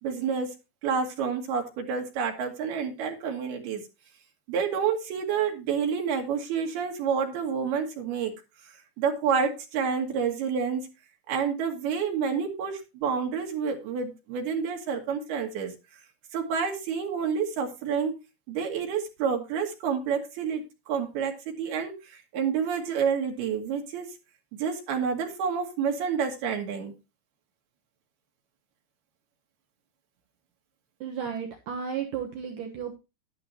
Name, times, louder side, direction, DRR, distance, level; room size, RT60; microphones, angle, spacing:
voice 1, 0.0-0.5 0.8-3.8 4.5-8.3 9.0-10.9 11.3-15.7 16.3-18.1 18.5-24.1 24.5-26.9, right 6 dB, 85° right, 2 dB, 4.1 m, -29 dB
voice 2, 31.0-33.0, right 7 dB, 65° right, 2 dB, 2.6 m, -33 dB
11.5 x 11.5 x 2.9 m, 0.27 s
omnidirectional pair, 4.4 m